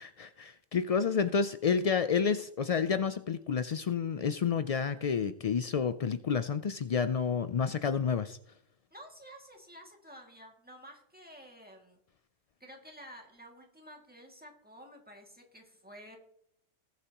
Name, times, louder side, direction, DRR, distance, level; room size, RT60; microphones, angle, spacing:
voice 1, 0.0-8.4, left 6 dB, 75° left, 11 dB, 0.3 m, -30 dB
voice 2, 8.9-12.0 12.6-16.2, equal, 5° right, 1 dB, 2.2 m, -51 dB
19.5 x 8.1 x 2.9 m, 0.72 s
omnidirectional pair, 1.2 m